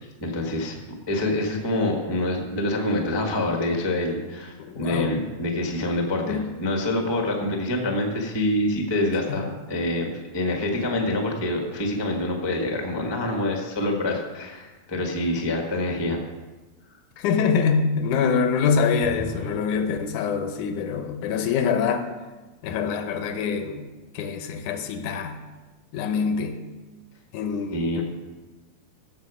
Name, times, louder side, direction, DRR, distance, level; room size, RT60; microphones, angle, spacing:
voice 1, 0.0-16.2 19.1-19.5 27.7-28.0, left 1 dB, 20° left, 1 dB, 0.6 m, -26 dB
voice 2, 4.6-5.1 6.3-6.5 9.3-9.5 17.2-22.0 22.6-23.9 24.1-25.4 25.9-26.6 27.3-28.0, left 6 dB, 80° left, 8 dB, 2.3 m, -25 dB
15.5 x 7.1 x 4.9 m, 1.2 s
omnidirectional pair, 3.5 m